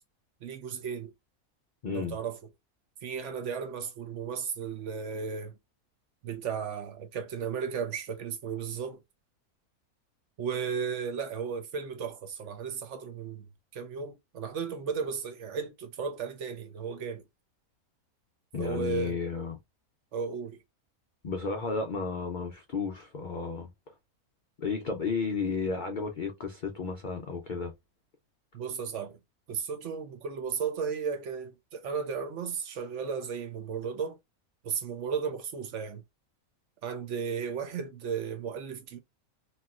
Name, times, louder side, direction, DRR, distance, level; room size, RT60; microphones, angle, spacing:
voice 1, 0.4-1.1 1.9-2.4 3.0-5.5 6.2-9.0 10.4-13.5 13.7-17.2 18.6-19.2 20.1-20.6 28.5-29.2 29.5-34.2 34.6-36.0 36.8-39.0, right 6 dB, 60° right, 0.9 m, -34 dB
voice 2, 1.8-2.2 18.5-19.6 21.2-23.9 24.6-27.7, left 4 dB, 85° left, 0.4 m, -33 dB
3.0 x 2.7 x 2.3 m
omnidirectional pair, 1.5 m